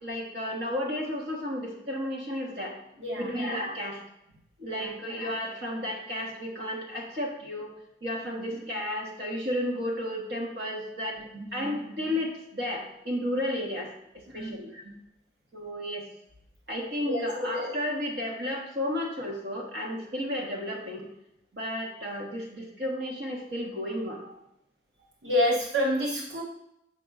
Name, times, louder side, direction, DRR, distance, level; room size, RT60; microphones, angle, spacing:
voice 1, 0.0-2.8 3.1-4.0 4.6-7.7 8.0-11.2 11.5-14.8 15.5-16.1 16.7-21.1 21.5-24.3, left 1 dB, 65° right, -1 dB, 1.4 m, -33 dB
voice 2, 3.0-3.3 4.6-4.9 11.3-11.7 14.3-14.6 14.8-15.0 17.1-17.3 25.2-26.4, left 1 dB, 85° right, -4 dB, 1.0 m, -28 dB
7.6 x 5.4 x 2.5 m, 0.81 s
head